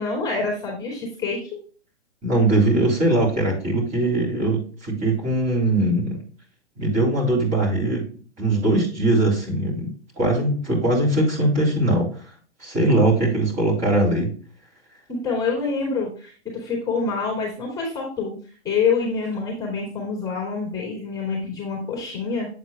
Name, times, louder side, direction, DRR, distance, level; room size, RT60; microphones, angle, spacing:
voice 1, 0.0-1.4 15.1-18.4 18.6-22.5, left 4 dB, 10° left, -2 dB, 2.7 m, -26 dB
voice 2, 2.2-6.2 6.8-8.1 8.4-9.9 10.2-12.1 12.6-14.3, right 2 dB, 20° right, -2 dB, 3.4 m, -21 dB
8.1 x 7.8 x 2.3 m, 0.40 s
hypercardioid pair, 130°, 34 cm